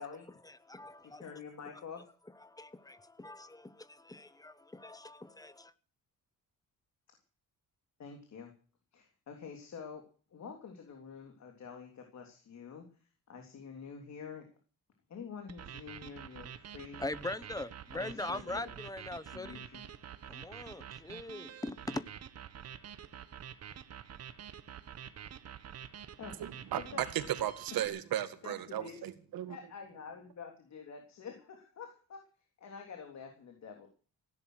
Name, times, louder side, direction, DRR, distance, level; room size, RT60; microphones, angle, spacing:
voice 1, 0.4-1.3 2.4-5.7 17.0-19.6 20.2-22.1, left 2 dB, 10° left, 0.9 m, -42 dB
voice 2, 1.0-2.0 8.0-8.5 8.9-10.0 10.3-12.8 13.3-14.4 15.1-17.0 17.9-18.7 19.3-19.8 26.2-26.5 26.8-27.3 28.4-28.9 29.5-32.2 32.6-33.9, left 6 dB, 50° left, 3.4 m, -47 dB
sound 1, 15.5-27.9, right 9 dB, 45° right, 1.3 m, -48 dB
voice 3, 26.4-29.6, right 11 dB, 85° right, 2.1 m, -35 dB
16.5 x 10.5 x 6.4 m
cardioid pair, 160°, 34 cm